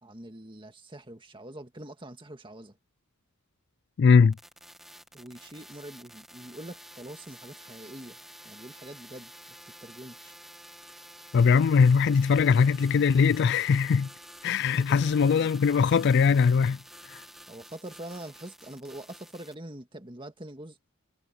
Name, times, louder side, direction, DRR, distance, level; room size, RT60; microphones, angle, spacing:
voice 1, 0.0-2.8 5.1-8.2 8.4-9.3 9.8-10.3 14.6-15.5 17.5-20.8, right 1 dB, 20° right, 1.9 m, -44 dB
voice 2, 4.0-4.4 11.3-14.1 14.4-16.8 17.1-17.2, left 5 dB, 50° left, 0.3 m, -21 dB
sound 1, 4.3-19.5, equal, ahead, 1.4 m, -49 dB
head